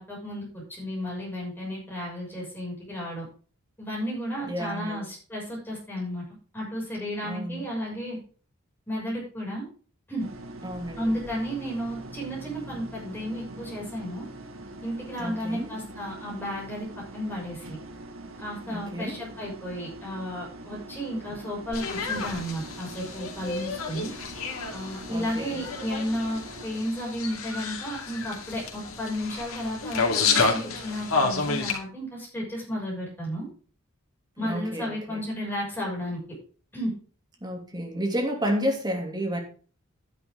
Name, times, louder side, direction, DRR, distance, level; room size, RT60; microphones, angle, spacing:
voice 1, 0.0-3.2 3.8-6.2 6.5-8.2 8.9-9.6 10.1-10.3 11.0-14.2 14.8-17.8 18.4-24.1 24.7-33.5 34.4-36.2 36.7-36.9, equal, 10° left, -4 dB, 6.5 m, -33 dB
voice 2, 4.4-5.0 7.2-7.6 10.6-11.1 15.2-15.7 18.7-19.2 25.1-25.6 34.4-35.2 37.4-39.4, equal, 20° right, 1 dB, 2.8 m, -31 dB
sound 1, 10.2-26.6, right 2 dB, 75° right, 1.8 m, -43 dB
sound 2, 21.7-31.8, left 4 dB, 85° left, 2.4 m, -30 dB
10.5 x 10.5 x 3.8 m, 0.40 s
head